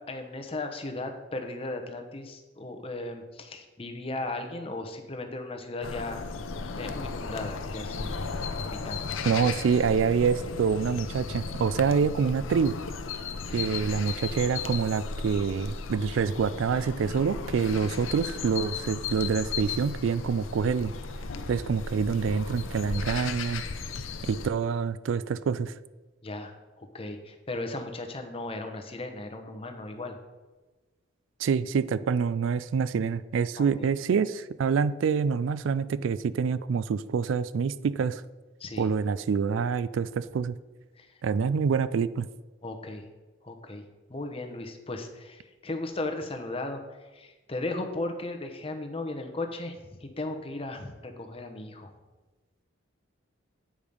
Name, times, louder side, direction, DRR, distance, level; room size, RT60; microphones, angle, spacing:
voice 1, 0.1-6.3 6.7-8.2 8.6-9.2 13.5-13.7 26.2-30.2 33.6-33.9 38.6-38.9 41.0-41.2 42.6-43.1 43.4-43.8 44.1-51.9, left 2 dB, 30° left, 5 dB, 0.8 m, -36 dB
sound 1, 5.8-24.5, left 4 dB, 80° left, 0.6 m, -35 dB
voice 2, 9.3-12.8 13.5-20.9 21.5-23.6 24.2-25.7 31.4-38.2 38.8-40.5 41.2-42.3, right 6 dB, 75° right, 16 dB, 0.3 m, -26 dB
8.6 x 5.0 x 5.3 m, 1.2 s
head